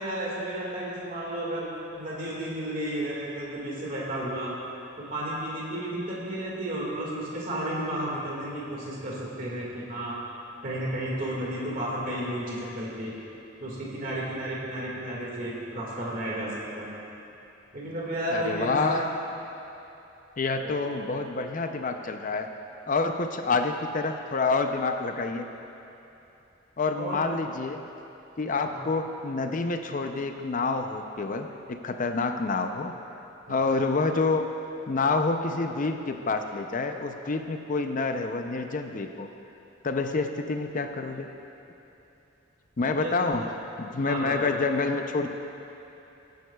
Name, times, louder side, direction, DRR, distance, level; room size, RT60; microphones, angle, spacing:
voice 1, 0.0-1.6 2.0-4.5 5.0-10.2 10.6-13.1 13.6-17.0 17.7-19.1 20.6-20.7 26.9-27.2 28.6-28.8 33.5-33.7 43.0-43.1 43.9-44.4, right 1 dB, 45° right, -5 dB, 1.9 m, -32 dB
voice 2, 18.3-19.0 20.4-22.5 22.9-25.5 26.8-27.8 28.4-32.9 33.5-34.5 34.9-39.3 39.8-41.3 42.8-43.5 43.8-45.3, left 3 dB, 45° left, 6 dB, 0.5 m, -28 dB
19.5 x 9.2 x 2.3 m, 2.9 s
head